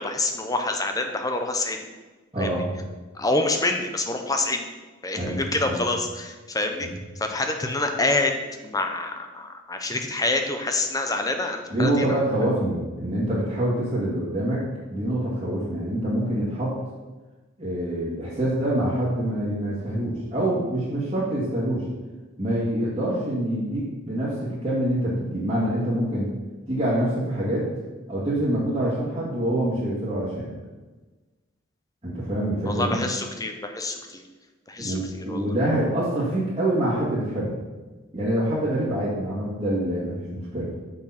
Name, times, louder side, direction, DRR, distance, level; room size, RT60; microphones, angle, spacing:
voice 1, 0.0-1.8 2.4-2.5 3.1-4.6 5.0-6.9 7.2-12.1 32.7-34.2 34.7-35.4, left 2 dB, 15° left, 5 dB, 0.8 m, -27 dB
voice 2, 2.3-2.7 5.1-5.9 6.8-6.9 11.7-16.8 17.6-21.9 22.4-26.3 26.7-27.7 28.1-30.5 32.0-33.0 34.8-37.6 38.1-40.7, right 1 dB, 25° right, -11 dB, 2.1 m, -26 dB
6.5 x 6.3 x 5.8 m, 1.3 s
head